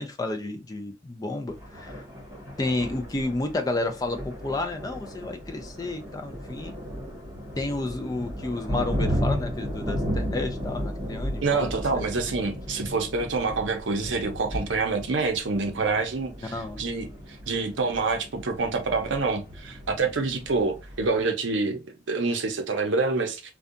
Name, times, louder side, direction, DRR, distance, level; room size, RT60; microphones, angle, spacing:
voice 1, 0.0-2.0 2.6-6.8 7.6-12.0 16.4-16.8, left 2 dB, 20° left, 0.3 m, -31 dB
Thunder, 1.5-21.2, equal, 20° right, 1.1 m, -35 dB
voice 2, 11.4-17.1 17.5-21.8 22.1-23.4, right 4 dB, 80° right, 0.6 m, -27 dB
2.6 x 2.2 x 2.4 m
head